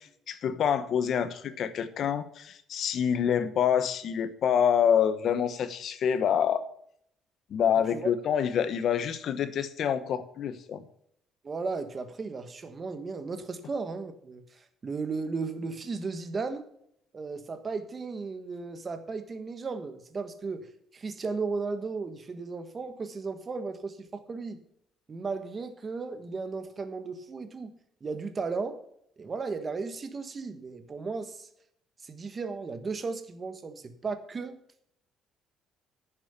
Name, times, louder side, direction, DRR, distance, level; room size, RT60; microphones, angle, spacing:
voice 1, 0.0-6.6 7.5-10.8, left 8 dB, 50° left, 12 dB, 1.1 m, -27 dB
voice 2, 11.4-16.6 17.1-24.6 25.1-27.7 28.0-28.8 29.2-31.5 32.0-34.6, right 4 dB, 25° right, 9 dB, 1.2 m, -35 dB
10.5 x 7.4 x 6.7 m, 0.69 s
cardioid pair, 145°, 0 cm